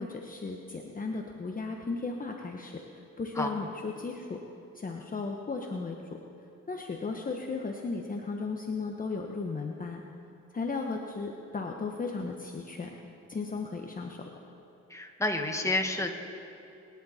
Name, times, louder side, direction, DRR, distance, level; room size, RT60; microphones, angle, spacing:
voice 1, 0.0-4.4 4.7-6.0 6.7-10.0 10.5-12.9 13.3-14.2, left 4 dB, 30° left, 2 dB, 1.1 m, -35 dB
voice 2, 14.9-16.1, left 2 dB, 10° left, 3 dB, 1.7 m, -29 dB
26.5 x 11.0 x 4.3 m, 2.9 s
cardioid pair, 90°, 30 cm